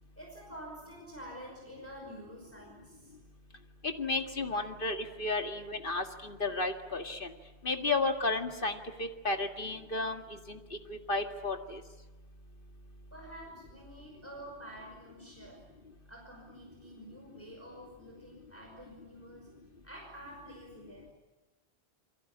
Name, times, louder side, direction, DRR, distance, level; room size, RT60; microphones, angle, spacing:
voice 1, 0.2-3.2 13.1-15.6 16.1-21.1, equal, 10° left, -1 dB, 5.4 m, -49 dB
voice 2, 3.8-7.3 7.6-10.2 10.5-11.8, left 3 dB, 50° left, 5 dB, 2.2 m, -33 dB
28.5 x 23.0 x 8.7 m, 1.2 s
omnidirectional pair, 1.1 m